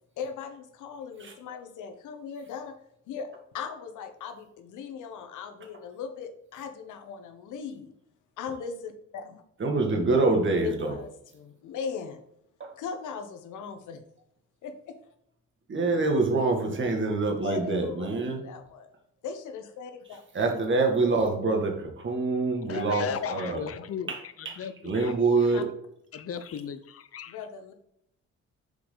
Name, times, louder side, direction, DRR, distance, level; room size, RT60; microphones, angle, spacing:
voice 1, 0.2-2.7 3.1-3.3 3.5-7.9 8.4-9.4 10.6-12.2 12.8-14.0 14.6-15.0 17.4-18.9 19.2-20.2 25.5-25.6 27.3-27.7, left 6 dB, 80° left, 7 dB, 1.2 m, -38 dB
voice 2, 9.6-10.9 12.6-12.7 15.7-18.4 20.3-23.7 24.1-24.2 24.5-24.6 24.8-25.6, right 3 dB, 40° right, 3 dB, 1.9 m, -25 dB
voice 3, 22.7-25.2 26.1-27.4, left 7 dB, 50° left, 12 dB, 0.8 m, -35 dB
6.9 x 4.8 x 4.1 m, 0.73 s
cardioid pair, 90°, 30 cm